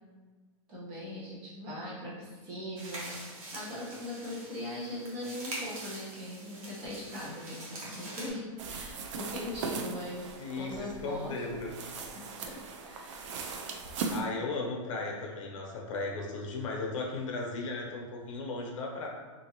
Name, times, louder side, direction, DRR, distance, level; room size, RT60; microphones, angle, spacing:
voice 1, 0.7-3.2 3.5-11.6 12.1-13.2, left 1 dB, 30° right, -6 dB, 1.2 m, -40 dB
sound 1, 2.8-8.3, right 1 dB, 90° right, 1.2 m, -44 dB
sound 2, 8.6-14.2, right 5 dB, 60° right, 0.5 m, -39 dB
voice 2, 10.4-11.7 14.1-19.1, left 3 dB, 70° left, -1 dB, 0.8 m, -36 dB
3.4 x 2.8 x 2.9 m, 1.4 s
supercardioid pair, 155°, 17 cm